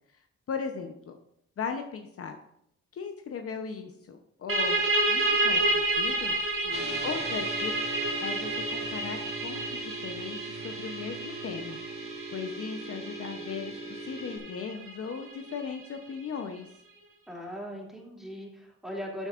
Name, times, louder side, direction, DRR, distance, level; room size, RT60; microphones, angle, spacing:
voice 1, 0.5-1.2 1.6-2.4 2.9-6.4 7.0-7.7 8.2-11.8 12.3-16.7, left 6 dB, 50° left, 5 dB, 0.8 m, -37 dB
sound 1, 4.5-15.9, right 2 dB, 45° right, 1.8 m, -30 dB
voice 2, 6.6-7.2 17.3-19.3, equal, ahead, -3 dB, 2.6 m, -40 dB
sound 2, 6.7-14.4, right 2 dB, 20° right, 2.3 m, -39 dB
12.5 x 7.2 x 2.5 m, 0.75 s
cardioid pair, 90°, 30 cm